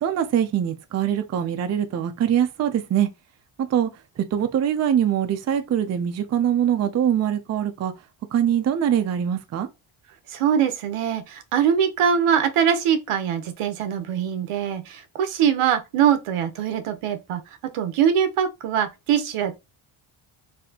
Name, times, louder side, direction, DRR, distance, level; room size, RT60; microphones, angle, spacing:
voice 1, 0.0-3.1 3.6-7.9 8.3-9.7, right 9 dB, 35° right, 0.4 m, -23 dB
voice 2, 10.3-17.4 17.7-19.5, right 8 dB, 85° right, 0.9 m, -22 dB
4.1 x 2.7 x 2.8 m
cardioid pair, 155°, 49 cm